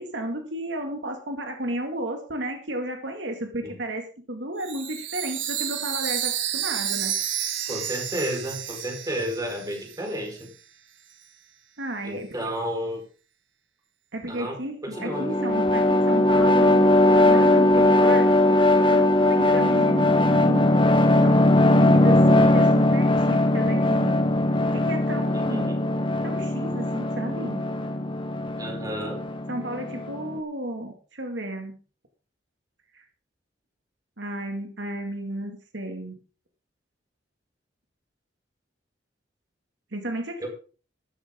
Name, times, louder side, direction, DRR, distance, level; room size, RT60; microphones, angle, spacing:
voice 1, 0.0-7.1 11.8-12.4 14.1-16.9 17.2-18.4 18.9-20.7 21.1-24.1 24.7-25.7 26.2-27.7 29.5-31.7 32.9-33.0 34.2-36.2 39.9-40.5, right 1 dB, 70° right, 4 dB, 2.3 m, -33 dB
Chime, 4.6-10.2, right 10 dB, 85° right, 2.1 m, -31 dB
voice 2, 7.7-10.5 12.0-13.0 14.3-14.6 14.8-15.3 25.3-25.8 28.6-29.2 40.4-40.5, equal, 20° right, 1 dB, 4.7 m, -32 dB
sound 1, 14.9-30.4, left 1 dB, 25° left, 1.2 m, -20 dB
13.5 x 13.0 x 3.8 m, 0.38 s
head